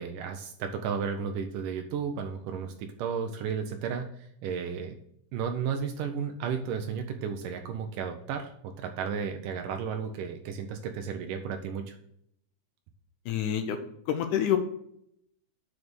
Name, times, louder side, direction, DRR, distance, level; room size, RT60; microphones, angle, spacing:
voice 1, 0.0-5.0 5.3-12.0, right 6 dB, 80° right, 5 dB, 2.3 m, -33 dB
voice 2, 13.3-13.8 14.1-14.6, left 10 dB, 75° left, 7 dB, 2.1 m, -27 dB
7.2 x 5.0 x 6.2 m, 0.71 s
omnidirectional pair, 3.8 m